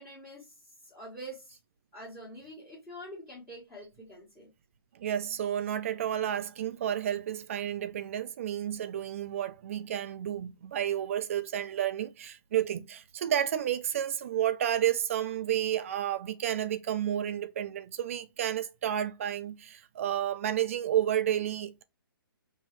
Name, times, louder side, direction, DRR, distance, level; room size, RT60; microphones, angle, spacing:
voice 1, 0.0-1.6 1.9-4.5, right 1 dB, 5° left, 1.5 m, -46 dB
voice 2, 4.9-21.8, right 10 dB, 35° right, 0.5 m, -31 dB
5.4 x 3.1 x 3.0 m
hypercardioid pair, 160°, 12 cm